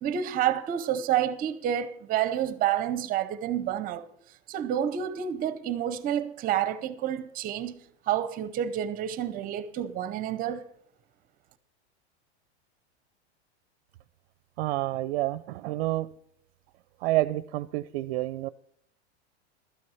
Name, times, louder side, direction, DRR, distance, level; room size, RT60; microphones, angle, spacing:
voice 1, 0.0-4.0 4.5-10.7, right 10 dB, 25° right, 0.7 m, -29 dB
voice 2, 14.6-16.1 17.0-18.5, right 16 dB, 60° right, 0.5 m, -28 dB
12.5 x 9.5 x 5.6 m
supercardioid pair, 145°, 34 cm